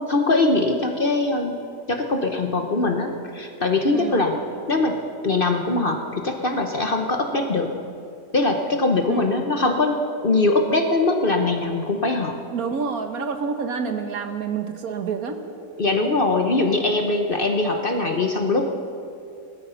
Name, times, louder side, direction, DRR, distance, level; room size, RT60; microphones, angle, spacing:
voice 1, 0.0-1.6 1.9-4.4 4.7-7.7 8.3-12.4 15.8-18.6, left 2 dB, 40° left, 4 dB, 1.0 m, -22 dB
voice 2, 3.9-4.3 9.1-9.4 12.5-15.4, right 5 dB, 65° right, 6 dB, 1.5 m, -28 dB
18.5 x 13.0 x 5.7 m, 2.5 s
omnidirectional pair, 1.7 m